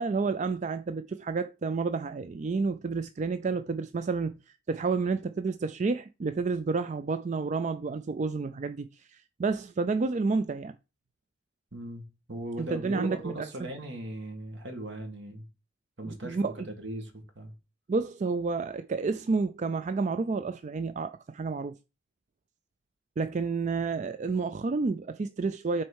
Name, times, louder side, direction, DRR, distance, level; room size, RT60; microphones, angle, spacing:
voice 1, 0.0-10.8 12.6-13.5 16.0-16.7 17.9-21.8 23.2-25.8, right 4 dB, 40° right, 0.4 m, -30 dB
voice 2, 11.7-15.5 16.0-16.5 16.8-17.5, right 1 dB, 65° right, 2.2 m, -38 dB
6.3 x 4.4 x 6.3 m
head